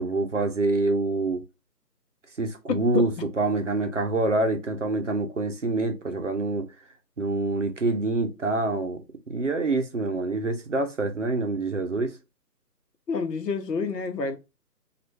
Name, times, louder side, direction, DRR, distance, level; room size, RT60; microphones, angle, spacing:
voice 1, 0.0-1.4 2.4-3.1 3.4-6.7 7.2-9.0 9.3-12.1, right 2 dB, 50° right, 0.6 m, -26 dB
voice 2, 13.1-14.4, left 4 dB, 75° left, 0.9 m, -28 dB
3.1 x 2.4 x 3.0 m
hypercardioid pair, 175°, 49 cm